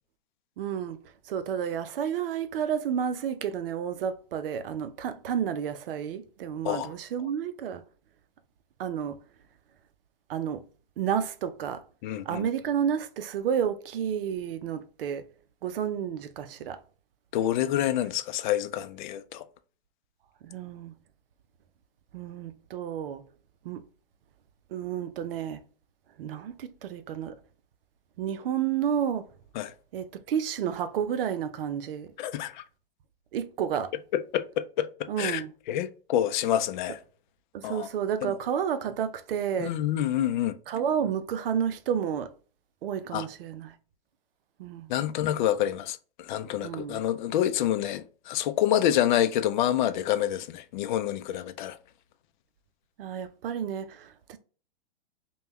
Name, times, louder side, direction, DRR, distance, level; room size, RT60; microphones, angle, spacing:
voice 1, 0.6-1.0 1.3-7.8 8.8-9.2 10.3-10.6 11.0-11.8 12.3-15.3 15.6-16.8 20.4-20.9 22.1-23.2 23.6-23.8 24.7-25.6 26.2-27.4 28.2-29.3 29.9-32.1 33.3-33.9 35.1-35.5 37.5-39.7 40.7-42.3 42.8-43.7 44.6-44.9 46.6-47.0 53.0-54.4, right 8 dB, 70° right, 0.6 m, -31 dB
voice 2, 12.0-12.4 17.3-19.4 29.6-29.7 32.2-32.6 34.1-35.4 35.7-37.0 37.6-37.9 38.2-38.4 39.6-40.6 43.1-43.3 44.9-51.8, left 11 dB, 55° left, 0.5 m, -27 dB
5.3 x 2.3 x 3.0 m
hypercardioid pair, 125°, 30 cm